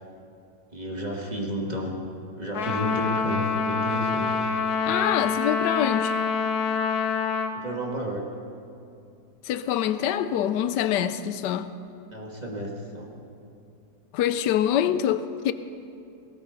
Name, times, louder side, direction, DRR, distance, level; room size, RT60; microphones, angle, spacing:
voice 1, 0.7-2.0 2.4-4.3 7.5-8.3 12.1-13.1, equal, 25° right, 1.8 m, -32 dB
Trumpet, 2.5-7.6, left 5 dB, 70° left, 1.3 m, -26 dB
voice 2, 4.9-6.2 9.4-11.7 14.1-15.5, left 10 dB, 90° left, 1.2 m, -25 dB
18.0 x 17.5 x 4.0 m
omnidirectional pair, 1.8 m